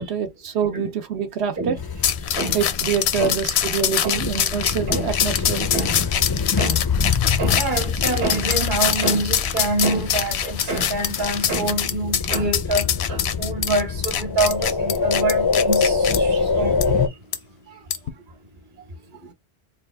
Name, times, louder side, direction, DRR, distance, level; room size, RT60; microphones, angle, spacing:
voice 1, 0.0-1.8 2.5-5.7 17.7-17.8, right 7 dB, 85° right, 1.0 m, -26 dB
sound 1, 1.8-17.1, left 5 dB, 40° left, 0.3 m, -25 dB
sound 2, 2.0-16.2 16.8-16.9 17.3-17.4 17.9-18.1, left 9 dB, 80° left, 0.8 m, -24 dB
voice 2, 7.4-16.7, right 2 dB, 50° right, 1.2 m, -26 dB
3.4 x 2.3 x 3.3 m
omnidirectional pair, 1.1 m